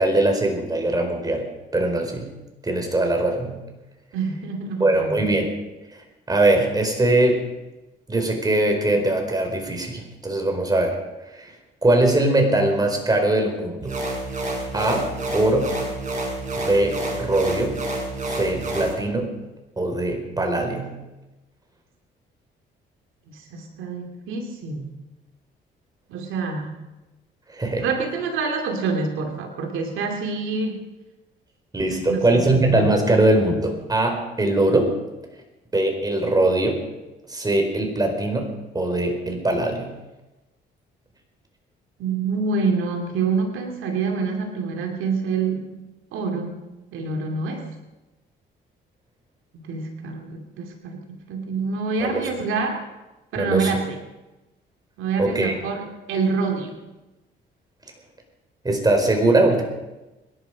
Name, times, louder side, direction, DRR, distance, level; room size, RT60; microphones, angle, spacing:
voice 1, 0.0-2.3 2.6-3.6 4.8-5.5 6.3-7.5 8.1-11.0 11.3-11.5 11.8-14.0 14.7-15.8 16.6-17.8 18.3-19.4 19.8-21.0 27.5-27.9 31.7-35.0 35.7-36.8 37.3-39.9 52.0-52.2 53.4-53.7 55.2-55.5 58.6-59.6, right 2 dB, 20° right, 3 dB, 4.5 m, -21 dB
voice 2, 4.1-5.2 23.3-24.9 26.1-26.8 27.8-30.8 31.9-32.5 42.0-45.8 46.1-47.7 49.5-52.8 53.3-54.0 55.0-56.9, right 4 dB, 90° right, 3 dB, 2.5 m, -27 dB
sound 1, 13.8-18.9, right 2 dB, 40° right, 5.5 m, -29 dB
25.5 x 11.0 x 5.0 m, 1.1 s
cardioid pair, 90°, 20 cm